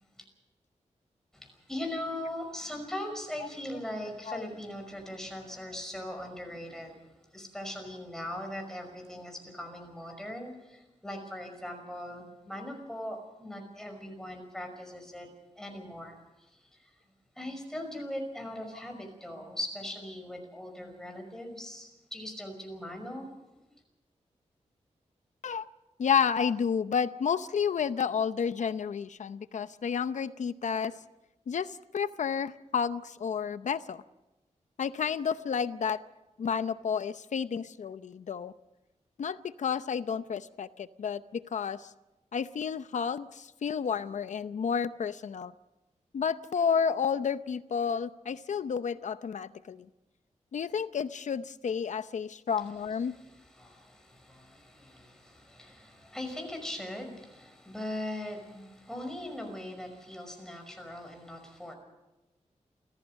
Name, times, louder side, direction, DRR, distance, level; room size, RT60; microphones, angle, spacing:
voice 1, 1.3-7.0 7.3-15.3 15.6-16.6 17.4-23.3 53.0-61.7, left 1 dB, 5° left, 3 dB, 5.6 m, -40 dB
voice 2, 26.0-30.9 31.5-34.0 34.8-36.0 36.4-38.5 39.2-41.9 42.3-45.5 46.1-49.9 50.5-53.2, left 6 dB, 75° left, 13 dB, 0.7 m, -31 dB
29.5 x 14.5 x 6.5 m, 1.0 s
wide cardioid pair, 120°, 12 cm